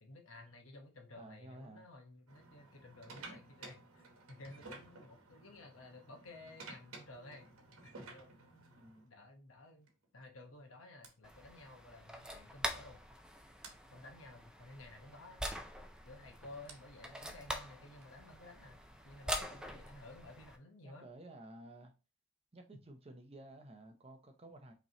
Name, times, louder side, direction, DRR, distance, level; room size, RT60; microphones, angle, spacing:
voice 1, 0.0-8.7 9.0-9.9 10.1-13.0 13.9-15.4 16.0-21.1 22.7-22.8, left 2 dB, 75° left, 1.0 m, -54 dB
voice 2, 1.2-1.9 8.8-9.1 20.8-21.9 22.5-24.7, right 1 dB, 30° right, 0.7 m, -53 dB
sound 1, 2.3-9.1 9.9-10.1 11.0-11.1 12.5-12.6 12.8-13.0 13.6-13.8 15.5-18.7, right 3 dB, 85° right, 1.0 m, -54 dB
sound 2, 11.2-20.6, equal, 5° right, 0.3 m, -45 dB
5.1 x 3.2 x 2.8 m
head